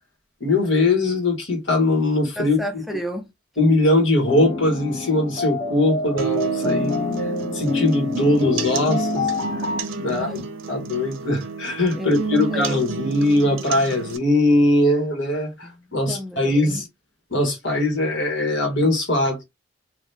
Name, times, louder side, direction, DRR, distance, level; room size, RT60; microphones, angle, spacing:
voice 1, 0.4-2.8 3.6-7.3 7.5-9.3 10.0-16.9 17.3-19.4, left 2 dB, 70° left, 1.5 m, -21 dB
voice 2, 2.4-3.3 10.0-10.4 11.9-12.8 15.6-16.8, equal, ahead, 0.4 m, -33 dB
sound 1, 4.3-9.8, left 3 dB, 15° left, 1.4 m, -26 dB
sound 2, 6.2-14.2, right 5 dB, 85° right, 0.5 m, -30 dB
3.4 x 2.7 x 2.8 m
head